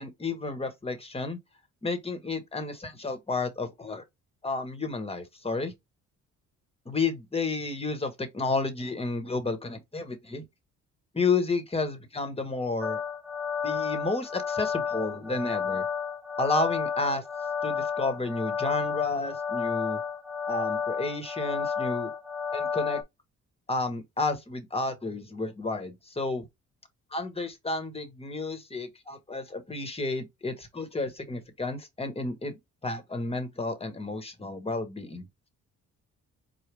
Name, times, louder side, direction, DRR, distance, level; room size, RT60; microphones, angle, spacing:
voice 1, 0.0-1.4 1.8-4.0 4.4-5.7 6.8-10.4 11.1-13.0 13.6-15.8 16.4-17.2 17.6-20.0 20.5-22.1 22.5-23.0 23.7-26.4 27.1-35.2, left 3 dB, 20° left, 1.4 m, -31 dB
sound 1, 12.8-23.0, left 6 dB, 5° right, 0.9 m, -31 dB
4.7 x 2.4 x 3.4 m
cardioid pair, 90°, 30 cm